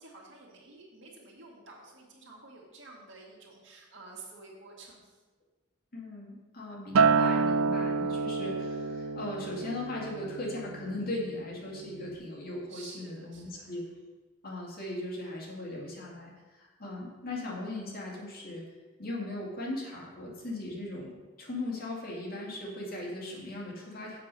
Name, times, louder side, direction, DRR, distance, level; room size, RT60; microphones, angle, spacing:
voice 1, 0.0-5.2 12.7-13.7, right 3 dB, 65° right, -2 dB, 2.1 m, -50 dB
voice 2, 5.9-13.8 14.4-18.6 19.0-24.2, left 1 dB, 45° left, -3 dB, 2.3 m, -38 dB
Acoustic guitar, 6.9-11.4 11.8-12.1, right 5 dB, 85° right, 0.4 m, -28 dB
7.5 x 6.9 x 5.5 m, 1.2 s
head